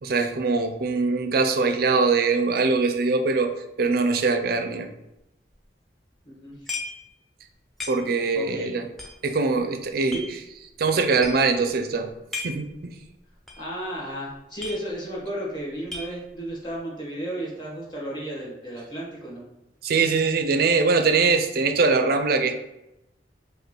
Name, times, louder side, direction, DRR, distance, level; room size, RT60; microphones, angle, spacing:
voice 1, 0.0-3.5 3.8-4.9 7.9-8.8 9.2-10.2 10.8-12.1 12.4-12.9 19.8-22.5, right 4 dB, 55° right, 7 dB, 0.4 m, -22 dB
voice 2, 6.2-6.7 8.3-8.7 10.1-10.4 13.6-19.4, right 1 dB, 25° left, -5 dB, 1.3 m, -34 dB
sound 1, 6.7-7.1 7.4-7.5 7.8-8.3 8.9-10.3 10.8-10.9 11.1-11.6 12.1-12.7 13.0-13.1 13.5-13.7 14.0-14.1 14.3-15.2 15.5-16.5, left 3 dB, ahead, 0.5 m, -36 dB
5.1 x 2.2 x 3.0 m, 0.91 s
head